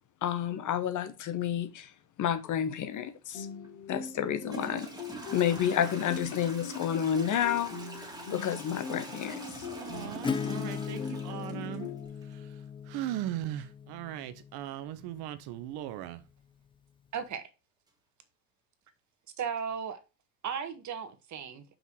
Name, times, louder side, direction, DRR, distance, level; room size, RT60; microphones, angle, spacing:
voice 1, 0.2-1.9 2.2-3.5 3.9-4.9 5.3-7.7 8.3-9.7, left 9 dB, 40° left, 1.2 m, -30 dB
sound 1, 3.3-12.1, left 4 dB, 65° left, 2.9 m, -43 dB
Toilet flush / Trickle dribble, 3.6-3.7 4.4-12.2, right 1 dB, 10° right, 2.5 m, -45 dB
voice 2, 9.8-11.9 12.3-12.4 12.9-16.2, right 13 dB, 55° right, 1.0 m, -38 dB
Acoustic guitar / Strum, 10.2-15.7, left 6 dB, 10° left, 0.5 m, -38 dB
voice 3, 17.1-17.5 19.4-20.0 20.4-21.6, right 7 dB, 35° right, 1.6 m, -35 dB
5.9 x 5.4 x 4.6 m
hypercardioid pair, 80°, 47 cm